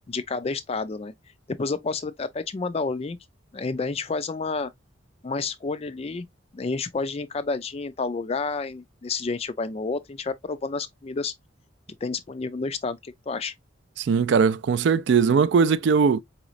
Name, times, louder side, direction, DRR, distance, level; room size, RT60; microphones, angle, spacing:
voice 1, 0.1-1.1 1.5-3.2 3.5-4.7 5.2-6.3 6.5-11.3 12.0-13.5, left 4 dB, 30° left, 0.4 m, -30 dB
voice 2, 14.0-16.2, right 5 dB, 60° right, 0.3 m, -20 dB
4.8 x 3.1 x 2.4 m
head